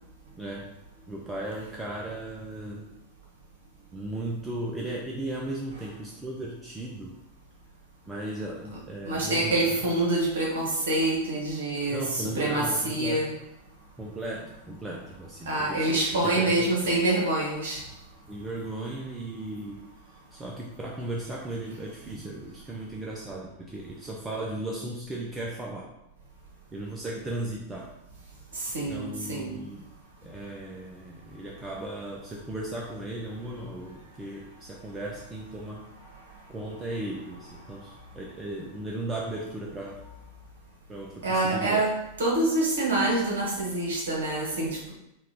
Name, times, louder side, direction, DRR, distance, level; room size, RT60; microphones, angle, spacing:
voice 1, 0.4-0.8 1.1-2.9 3.9-7.1 8.1-9.5 11.9-13.3 14.0-16.7 18.3-19.8 20.1-25.9 26.7-27.9 28.9-29.9 30.2-35.8 36.5-40.0 40.9-41.8, right 1 dB, 15° right, -2 dB, 0.6 m, -36 dB
voice 2, 9.1-13.3 15.5-17.8 28.5-29.5 41.2-44.9, right 2 dB, 60° right, -2 dB, 1.4 m, -26 dB
4.4 x 2.4 x 3.9 m, 0.85 s
figure-of-eight pair, 90°, 0 cm